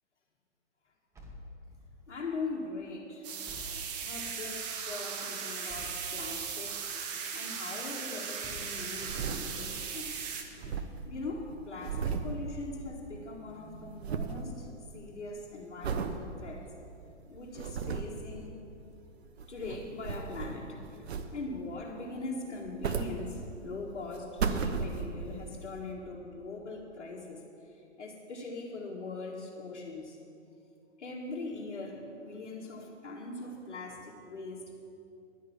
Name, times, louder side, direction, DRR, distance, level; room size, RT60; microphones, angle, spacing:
sound 1, 1.1-2.1 3.4-4.4 5.7-6.6 8.4-9.3 10.6-11.5, left 1 dB, 10° right, 1.1 m, -50 dB
voice 1, 2.1-3.3 4.1-6.9 7.3-10.3 11.0-14.7 14.9-16.7 17.3-18.5 19.5-27.4 28.0-30.2 31.0-34.8, left 3 dB, 75° left, -4 dB, 1.7 m, -41 dB
sound 2, 3.2-10.4, right 6 dB, 35° right, 1.1 m, -38 dB
sound 3, 8.8-9.9 10.2-10.3 10.4-13.2 13.5-14.5 14.9-15.3 15.8-16.2 16.7-16.8 17.4-18.2 19.2-20.7 21.1-21.6 22.5-23.7 24.1-25.3 25.9-26.0, right 5 dB, 65° right, 1.0 m, -35 dB
10.5 x 6.5 x 8.5 m, 2.6 s
hypercardioid pair, 130°, 35 cm